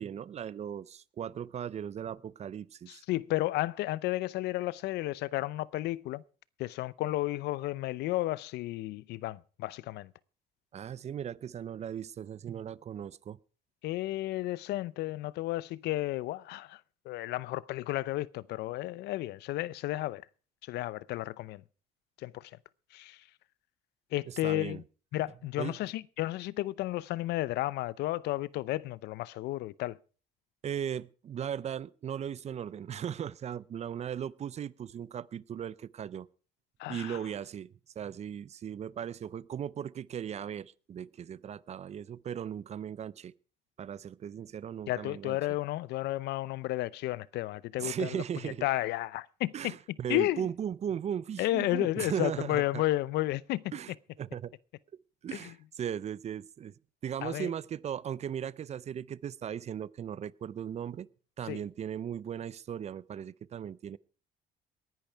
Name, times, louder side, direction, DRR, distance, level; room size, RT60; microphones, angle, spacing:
voice 1, 0.0-3.0 10.7-13.4 24.2-24.8 25.6-25.8 30.6-36.3 36.9-43.3 43.8-45.4 47.8-48.6 49.5-52.8 53.7-54.5 55.2-56.7 57.0-61.1 61.4-64.0, right 9 dB, 40° right, 0.6 m, -37 dB
voice 2, 2.9-6.2 6.6-10.1 13.8-16.8 17.1-20.2 20.7-21.6 22.2-22.3 22.9-23.2 24.1-24.8 25.1-30.0 36.8-37.2 44.9-48.2 48.6-49.5 50.1-50.4 51.4-53.6 57.2-57.5 61.5-61.6, left 17 dB, 80° left, 0.6 m, -32 dB
19.5 x 10.5 x 4.6 m
cardioid pair, 110°, 17 cm